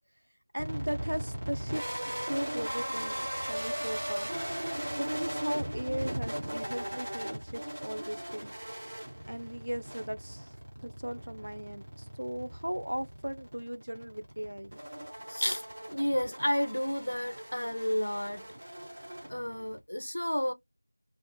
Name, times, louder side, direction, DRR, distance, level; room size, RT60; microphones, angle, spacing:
voice 1, 0.5-1.8 2.2-4.3 5.0-8.5 9.3-10.5 10.8-14.7, equal, 70° right, 0.3 m, -37 dB
sound 1, 0.6-19.8, equal, 20° right, 0.6 m, -38 dB
voice 2, 15.3-15.6 15.9-18.4 19.3-20.5, equal, 60° left, 0.6 m, -31 dB
2.8 x 2.4 x 2.2 m
figure-of-eight pair, 180°, 0 cm